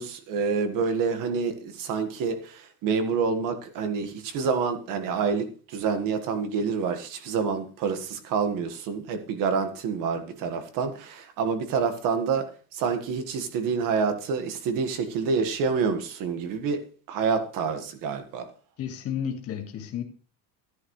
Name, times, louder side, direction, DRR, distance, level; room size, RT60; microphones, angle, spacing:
voice 1, 0.0-18.5, right 5 dB, 40° right, 1.8 m, -28 dB
voice 2, 18.8-20.0, left 8 dB, 30° left, 2.0 m, -32 dB
14.0 x 10.5 x 3.2 m
cardioid pair, 175°, 47 cm